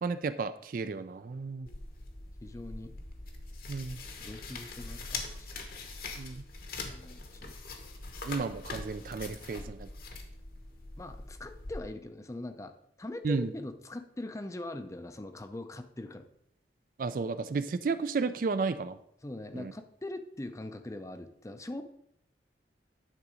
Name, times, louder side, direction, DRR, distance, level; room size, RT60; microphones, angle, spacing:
voice 1, 0.0-1.7 3.7-4.0 6.2-6.4 8.2-9.9 13.2-13.5 17.0-19.0 19.6-19.7, right 4 dB, 50° right, 12 dB, 0.4 m, -33 dB
sound 1, 1.7-11.8, left 3 dB, 55° left, 1.1 m, -43 dB
voice 2, 2.4-2.9 4.2-5.6 6.7-7.6 11.0-12.7 13.0-16.3 19.2-21.8, left 2 dB, 15° left, 8 dB, 0.5 m, -42 dB
9.7 x 4.0 x 4.9 m, 0.72 s
head